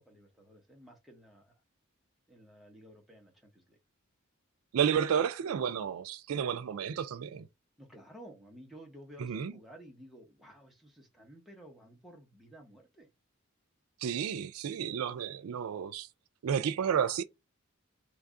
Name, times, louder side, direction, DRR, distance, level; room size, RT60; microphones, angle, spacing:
voice 1, 0.0-1.5 2.3-3.8 7.8-13.1, equal, ahead, 0.9 m, -54 dB
voice 2, 4.7-7.5 9.2-9.5 14.0-16.1 16.4-17.2, right 8 dB, 85° right, 0.4 m, -31 dB
3.2 x 2.4 x 3.6 m
head